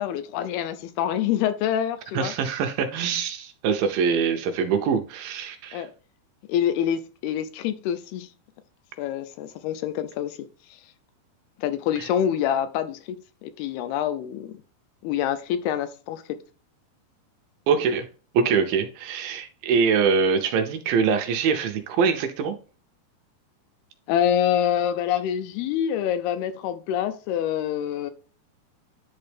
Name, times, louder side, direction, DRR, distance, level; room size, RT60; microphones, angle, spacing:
voice 1, 0.0-2.3 5.7-5.9 6.5-8.3 9.0-10.4 11.6-13.2 13.4-14.6 15.0-16.4 24.1-28.1, left 10 dB, 80° left, 2.6 m, -26 dB
voice 2, 2.1-5.9 17.7-18.1 18.3-22.6, right 6 dB, 75° right, 2.3 m, -23 dB
10.5 x 4.1 x 3.4 m
omnidirectional pair, 4.6 m